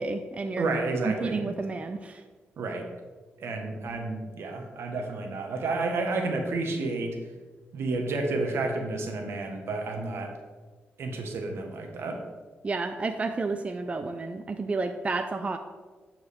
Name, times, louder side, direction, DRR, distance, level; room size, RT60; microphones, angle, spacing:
voice 1, 0.0-0.7 1.0-2.2 12.6-15.6, right 3 dB, 30° right, 7 dB, 0.4 m, -31 dB
voice 2, 0.6-1.4 2.6-2.9 3.4-7.2 7.7-10.3 11.0-12.2, right 3 dB, 75° right, 3 dB, 1.3 m, -30 dB
11.0 x 4.7 x 3.6 m, 1.4 s
cardioid pair, 90°, 4 cm